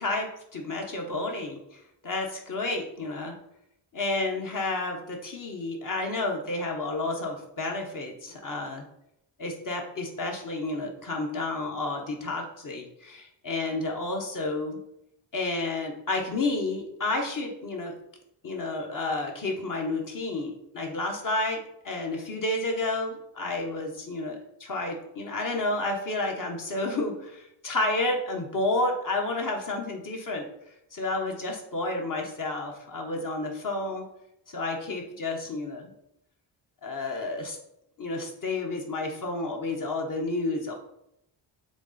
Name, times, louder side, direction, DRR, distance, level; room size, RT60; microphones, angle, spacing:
voice 1, 0.0-3.4 3.9-8.8 9.4-14.8 15.3-17.9 18.4-30.5 30.9-34.0 34.5-35.9 36.8-37.6 38.0-40.7, left 2 dB, 40° left, 1 dB, 1.3 m, -31 dB
7.0 x 3.7 x 4.2 m, 0.81 s
wide cardioid pair, 125°, 47 cm